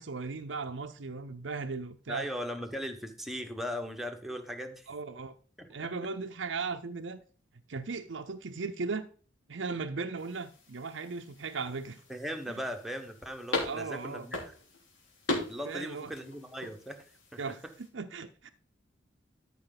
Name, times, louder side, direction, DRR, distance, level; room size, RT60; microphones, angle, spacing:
voice 1, 0.0-2.3 4.9-5.3 5.7-7.2 7.7-9.1 9.5-12.0 12.5-12.6 13.6-14.3 15.7-16.1 17.4-17.6 17.9-18.5, right 4 dB, 70° right, 0.6 m, -37 dB
voice 2, 2.1-4.9 5.6-5.9 12.1-14.5 15.5-17.1, equal, ahead, 1.2 m, -38 dB
sound 1, 10.2-17.9, left 2 dB, 75° left, 3.3 m, -40 dB
13.0 x 5.8 x 4.0 m
head